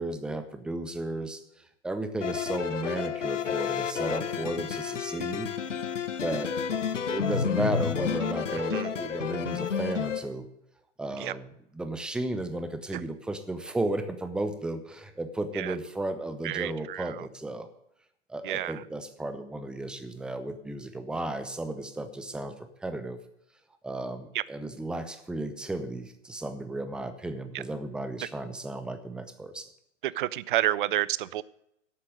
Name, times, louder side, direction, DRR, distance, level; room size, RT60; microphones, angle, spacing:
voice 1, 0.0-1.4 1.8-5.5 6.2-6.5 7.1-10.5 11.0-17.7 18.3-22.6 22.8-23.2 23.8-29.7, right 2 dB, ahead, 10 dB, 0.7 m, -34 dB
sound 1, 2.2-10.2, left 7 dB, 75° left, 1.2 m, -30 dB
voice 2, 16.4-17.3 18.4-18.8 24.3-24.4 30.0-31.4, right 14 dB, 45° right, 20 dB, 0.5 m, -30 dB
11.5 x 8.7 x 6.4 m, 0.77 s
hypercardioid pair, 125°, 37 cm